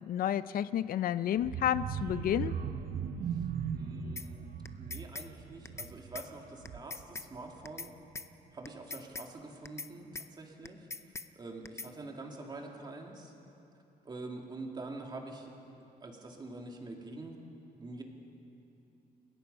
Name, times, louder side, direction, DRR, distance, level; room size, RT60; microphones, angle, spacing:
voice 1, 0.0-2.5, left 10 dB, 70° left, 15 dB, 0.5 m, -31 dB
sound 1, 1.4-7.1 7.5-7.8 8.1-8.2, right 7 dB, 70° right, 0.9 m, -38 dB
voice 2, 3.7-4.5 4.8-7.9 8.5-10.9 11.4-13.3 14.0-15.5 15.8-17.3 17.8-18.0, right 2 dB, 30° right, 1 dB, 2.5 m, -45 dB
sound 2, 4.2-4.3 4.6-5.3 5.6-5.9 6.1-6.3 6.6-7.3 7.6-7.9 8.1-8.3 8.6-9.3 9.6-9.9 10.1-10.3 10.6-11.3 11.6-11.9, left 3 dB, 20° left, 0.6 m, -41 dB
29.5 x 17.0 x 5.4 m, 2.8 s
wide cardioid pair, 160°, 15 cm